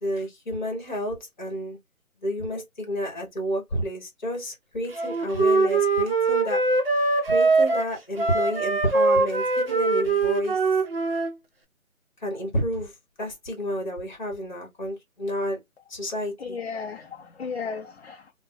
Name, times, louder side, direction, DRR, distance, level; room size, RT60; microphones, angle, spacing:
voice 1, 0.0-1.8 2.2-6.6 7.3-10.6 12.2-15.6 15.9-16.6, equal, 30° left, 1.1 m, -30 dB
Wind instrument woodwind instrument, 5.0-11.3, right 3 dB, 45° right, 0.6 m, -22 dB
voice 2, 16.4-18.3, left 5 dB, 50° left, 0.4 m, -35 dB
2.5 x 2.1 x 3.5 m
figure-of-eight pair, 165°, 43 cm